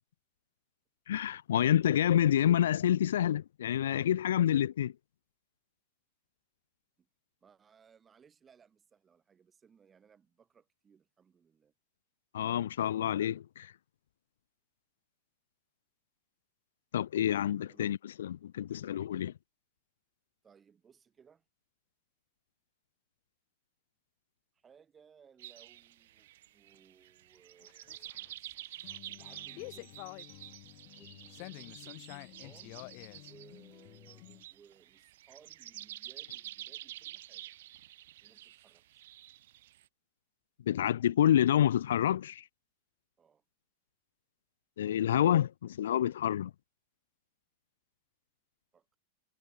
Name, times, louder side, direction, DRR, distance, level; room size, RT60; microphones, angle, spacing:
voice 1, 1.1-4.9 12.3-13.7 16.9-19.3 40.7-42.4 44.8-46.5, left 10 dB, 60° left, 0.3 m, -28 dB
voice 2, 7.4-11.7 17.7-17.9 20.4-21.4 24.5-28.1 29.0-30.0 30.9-32.8 33.2-37.5 38.2-39.0 43.2-43.4 48.7-48.9, right 7 dB, 20° right, 7.0 m, -62 dB
sound 1, 25.4-39.9, right 14 dB, 55° right, 0.7 m, -49 dB
sound 2, 27.6-34.4, left 40 dB or more, 45° left, 2.8 m, -49 dB
figure-of-eight pair, 90°, 0 cm